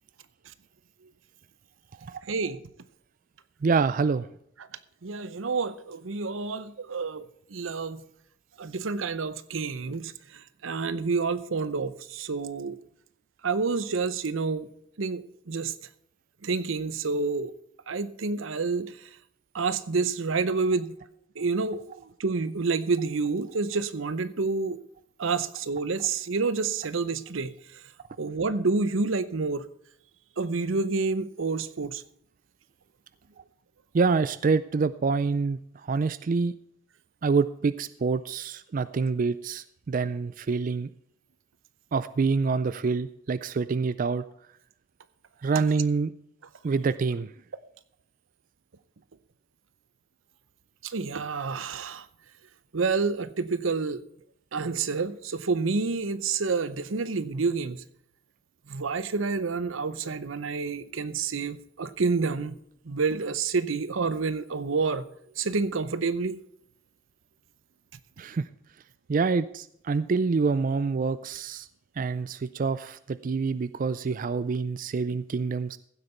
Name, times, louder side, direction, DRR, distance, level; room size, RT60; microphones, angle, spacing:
voice 1, 2.3-2.6 5.0-7.3 7.5-8.0 8.6-10.1 10.6-12.8 13.4-14.7 15.0-15.7 16.4-17.5 17.9-18.9 19.5-20.9 21.4-21.8 22.2-24.8 25.2-27.5 28.2-29.6 30.4-32.0 50.8-52.0 52.7-54.0 54.5-57.8 58.7-62.5 62.9-65.0 65.4-66.4, right 4 dB, 90° right, 0.7 m, -28 dB
voice 2, 3.6-4.3 33.9-35.6 35.9-36.5 37.2-40.9 41.9-44.2 45.4-46.1 46.6-47.3 68.2-68.4 69.1-71.7 72.0-75.8, right 4 dB, 45° right, 0.4 m, -26 dB
15.5 x 8.0 x 4.4 m
head